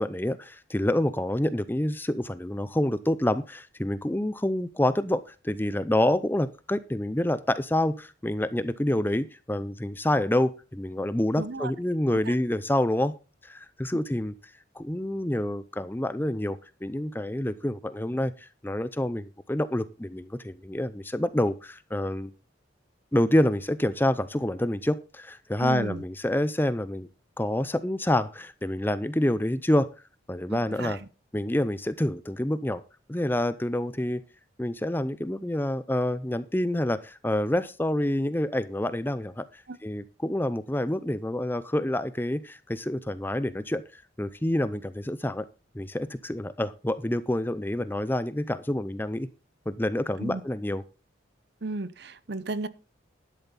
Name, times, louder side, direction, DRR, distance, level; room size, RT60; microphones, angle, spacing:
voice 1, 0.0-13.1 13.4-14.3 14.8-22.3 23.1-27.1 27.4-29.9 30.3-31.0 31.3-32.8 33.1-34.2 34.6-45.4 45.7-49.3 49.7-50.8, left 1 dB, 10° left, 0.5 m, -27 dB
voice 2, 11.4-11.7 12.1-12.3 25.6-26.0 30.5-31.0 39.7-39.8 50.2-50.4 51.6-52.7, right 2 dB, 55° right, 0.7 m, -34 dB
12.0 x 10.5 x 4.1 m
head